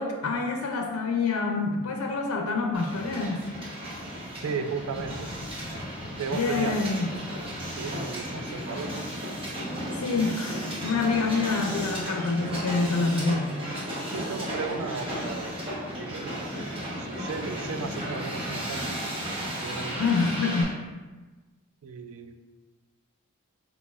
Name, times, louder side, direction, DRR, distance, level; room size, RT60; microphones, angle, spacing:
voice 1, 0.0-3.4 6.3-7.1 10.0-13.5 20.0-20.7, left 4 dB, 75° left, 2 dB, 0.5 m, -27 dB
Hiss, 2.7-20.6, equal, 25° right, 0.9 m, -34 dB
voice 2, 4.4-5.3 6.2-6.8 7.8-9.0 9.9-10.1 14.1-15.5 16.0-16.7 17.0-19.1 19.6-20.0 21.8-22.3, right 5 dB, 75° right, 7 dB, 0.4 m, -35 dB
4.6 x 4.0 x 2.4 m, 1.2 s
head